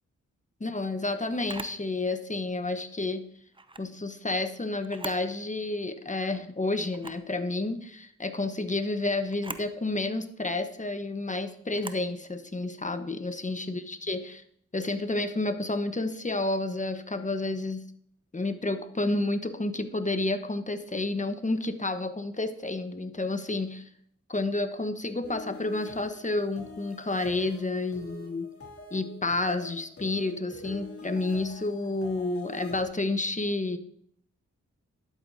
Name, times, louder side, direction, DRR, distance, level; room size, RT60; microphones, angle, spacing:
voice 1, 0.6-3.2 3.8-14.4 14.7-17.8 18.3-23.8 24.3-28.5 28.9-33.8, left 2 dB, 25° left, 9 dB, 1.1 m, -30 dB
Camera, 1.5-1.8 3.5-3.9 4.8-5.3 5.7-5.8 6.9-7.3 9.3-9.7 11.7-12.1, right 2 dB, 15° right, 0.7 m, -41 dB
sound 1, 25.2-32.8, left 1 dB, 45° left, 2.7 m, -46 dB
11.0 x 8.1 x 2.7 m, 0.66 s
supercardioid pair, 40°, 31 cm